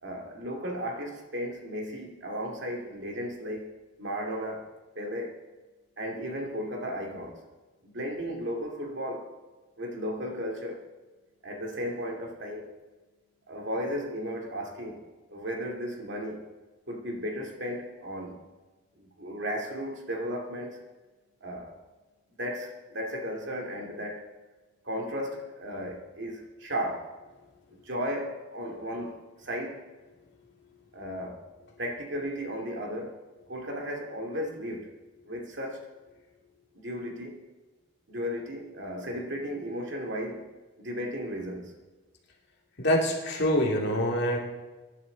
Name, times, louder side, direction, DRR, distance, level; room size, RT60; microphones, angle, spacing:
voice 1, 0.0-3.7 4.0-4.7 5.0-5.4 6.0-7.4 7.8-9.3 9.8-10.8 11.4-12.7 13.5-15.0 15.3-16.4 16.9-18.4 19.0-20.8 21.4-21.7 22.4-24.3 24.8-27.1 27.8-29.8 30.9-31.4 31.8-33.2 33.5-34.9 35.3-35.9 36.7-37.4 38.1-40.5 40.8-41.7, equal, 55° right, 2.5 m, -35 dB
voice 2, 42.8-44.4, equal, 50° left, 2.4 m, -25 dB
24.0 x 11.0 x 4.0 m
head